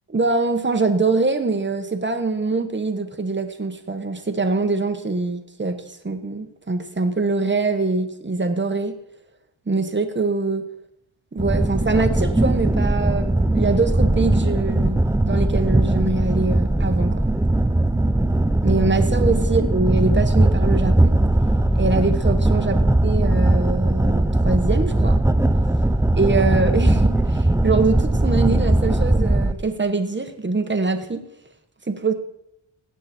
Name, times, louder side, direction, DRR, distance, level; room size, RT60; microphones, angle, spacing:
voice 1, 0.1-8.9 9.7-10.6 11.3-17.2 18.6-21.2 21.7-25.2 26.1-31.2 31.9-32.1, right 3 dB, 25° right, 8 dB, 1.2 m, -23 dB
sound 1, 11.4-29.5, right 1 dB, 5° right, 0.5 m, -19 dB
16.0 x 8.5 x 4.4 m, 0.79 s
wide cardioid pair, 125°, 48 cm